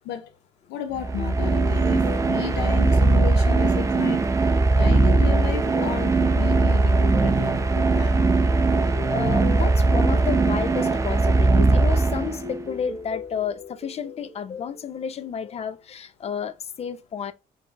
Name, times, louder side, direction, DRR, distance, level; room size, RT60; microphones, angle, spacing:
voice 1, 0.7-8.2, left 10 dB, 85° left, 0.6 m, -33 dB
sound 1, 0.9-12.7, right 3 dB, 20° right, 0.5 m, -20 dB
sound 2, 1.2-15.9, left 4 dB, 15° left, 1.4 m, -40 dB
voice 2, 8.8-17.3, left 7 dB, 40° left, 0.6 m, -31 dB
4.8 x 2.9 x 3.4 m
cardioid pair, 110°, 17 cm